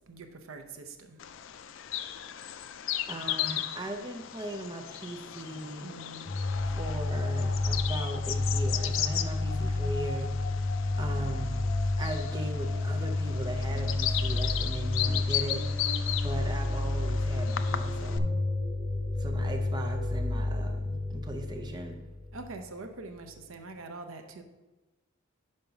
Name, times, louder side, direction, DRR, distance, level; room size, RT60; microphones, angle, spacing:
voice 1, 0.1-1.2 5.8-6.3 22.3-24.4, right 3 dB, 75° right, 6 dB, 0.7 m, -44 dB
Bird vocalization bird call bird song, 1.2-18.2, left 11 dB, 65° left, 0.4 m, -36 dB
voice 2, 3.1-5.9 6.6-10.7 10.9-11.7 12.0-15.7 16.2-18.4 19.2-22.0, right 1 dB, 20° right, 3 dB, 0.5 m, -38 dB
sound 1, 6.2-22.6, left 2 dB, 45° left, 1.8 m, -30 dB
5.4 x 5.1 x 5.8 m, 1.1 s
head